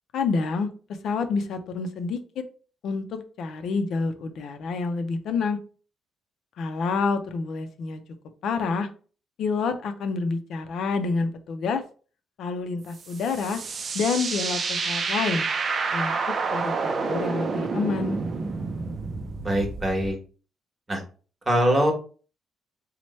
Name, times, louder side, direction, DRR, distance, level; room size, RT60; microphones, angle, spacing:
voice 1, 0.1-0.7 1.0-2.2 2.8-5.6 6.6-8.0 8.4-8.9 9.4-11.8 12.4-13.6 13.9-15.5 15.9-18.2, left 4 dB, 70° left, 8 dB, 0.5 m, -28 dB
sound 1, 12.9-20.1, right 4 dB, 45° right, 0.4 m, -29 dB
voice 2, 19.4-20.2 20.9-21.0 21.5-21.9, right 1 dB, 25° right, 1 dB, 1.2 m, -22 dB
3.0 x 2.1 x 4.1 m, 0.39 s
cardioid pair, 90°, 0 cm